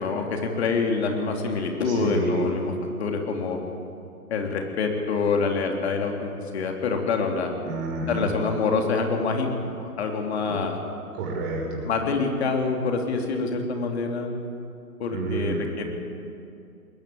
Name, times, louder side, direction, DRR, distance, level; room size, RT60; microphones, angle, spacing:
voice 1, 0.0-2.7 3.0-3.6 4.3-7.5 8.1-9.5 9.8-10.8 11.8-14.3 15.0-15.8, left 4 dB, 40° left, 3 dB, 3.4 m, -26 dB
voice 2, 1.8-2.5 7.6-8.3 10.4-10.6 11.1-11.9 15.1-15.7, right 2 dB, 20° right, -1 dB, 5.5 m, -29 dB
21.5 x 19.0 x 8.7 m, 2.5 s
figure-of-eight pair, 140°, 47 cm